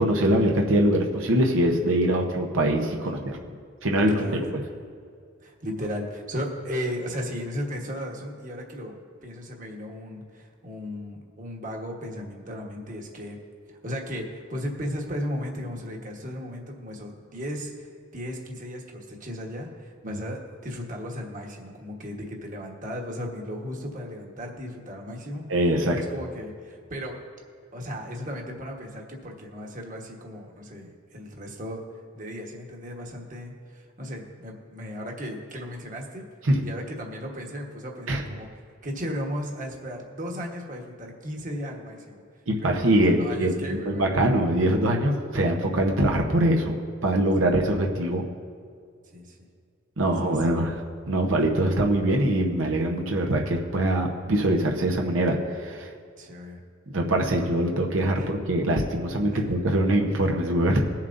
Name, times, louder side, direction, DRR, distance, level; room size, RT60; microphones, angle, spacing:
voice 1, 0.0-3.4 3.8-4.6 20.0-20.2 25.5-25.9 36.5-36.6 38.1-38.2 42.5-48.2 50.0-50.7 51.1-55.9 56.9-60.8, right 1 dB, 80° right, 1 dB, 0.9 m, -23 dB
voice 2, 4.2-4.5 5.4-13.4 13.7-25.6 25.9-27.2 27.7-31.8 32.1-36.3 36.6-38.5 38.8-42.2 42.6-44.1 47.4-47.5 49.1-49.5 50.0-50.4 56.2-56.6 58.2-58.3 59.3-59.5, equal, 40° right, 1 dB, 1.3 m, -36 dB
22.0 x 7.3 x 2.6 m, 2.2 s
head